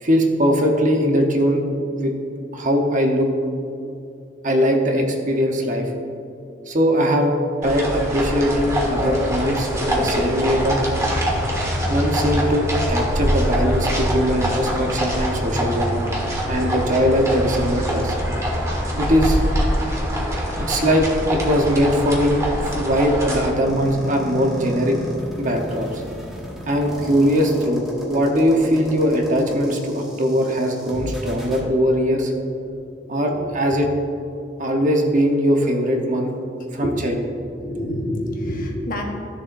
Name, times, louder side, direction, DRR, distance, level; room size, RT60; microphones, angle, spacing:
voice 1, 0.0-1.6 1.9-2.1 2.5-3.3 4.4-5.9 6.7-7.4 7.6-10.8 11.9-16.0 16.5-18.2 19.0-19.4 20.6-22.4 22.8-25.0 25.4-26.0 26.7-32.3 33.1-33.9 34.6-36.3 36.7-37.2, equal, 45° right, 2 dB, 1.0 m, -20 dB
sound 1, 7.6-23.5, equal, 15° right, 1.5 m, -24 dB
sound 2, 23.6-31.6, equal, ahead, 1.5 m, -33 dB
voice 2, 33.0-33.5 36.0-36.1 36.8-37.0 37.4-39.0, left 1 dB, 50° left, 1 dB, 1.2 m, -28 dB
13.5 x 7.0 x 2.6 m, 2.7 s
head